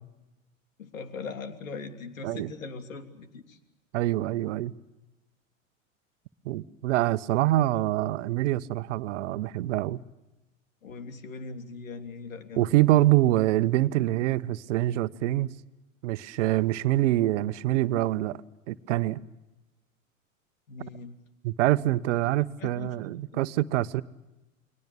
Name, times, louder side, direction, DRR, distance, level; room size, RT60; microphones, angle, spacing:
voice 1, 0.8-3.6 10.8-12.8 20.7-21.2 22.6-22.9, left 4 dB, 80° left, 3.2 m, -40 dB
voice 2, 3.9-4.7 6.4-10.0 12.6-15.5 16.0-18.4 18.7-19.2 21.4-24.0, right 16 dB, 65° right, 1.1 m, -25 dB
30.0 x 22.5 x 6.9 m
hypercardioid pair, 90°, 40 cm